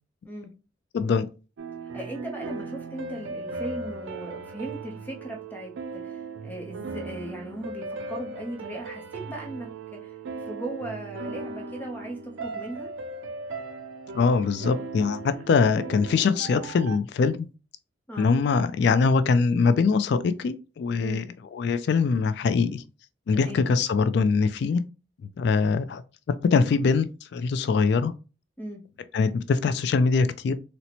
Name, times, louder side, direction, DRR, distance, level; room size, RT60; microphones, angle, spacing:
voice 1, 0.9-1.3 14.1-17.5 18.2-21.2 21.5-22.8 23.3-24.8 25.4-26.0 26.4-28.1 29.1-30.5, left 4 dB, 60° left, 0.3 m, -23 dB
sound 1, 1.6-17.0, right 3 dB, 90° right, 0.4 m, -37 dB
voice 2, 1.9-12.9 18.1-18.4 21.0-21.3 23.3-23.7 25.6-25.8 28.6-28.8, right 1 dB, 10° left, 0.6 m, -38 dB
4.1 x 2.1 x 2.8 m
head